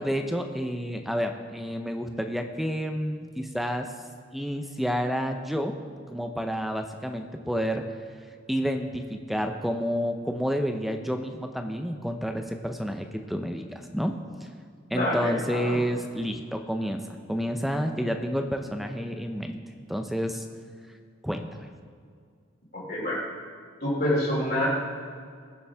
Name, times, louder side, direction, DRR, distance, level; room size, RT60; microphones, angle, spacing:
voice 1, 0.0-3.9 4.3-5.8 6.1-7.8 8.5-14.1 14.9-17.0 17.3-19.6 19.9-20.5 21.2-21.5, equal, ahead, 5 dB, 0.6 m, -29 dB
voice 2, 14.9-15.8 22.7-23.2 23.8-24.7, left 1 dB, 45° left, -4 dB, 2.9 m, -27 dB
21.0 x 7.1 x 3.5 m, 2.2 s
head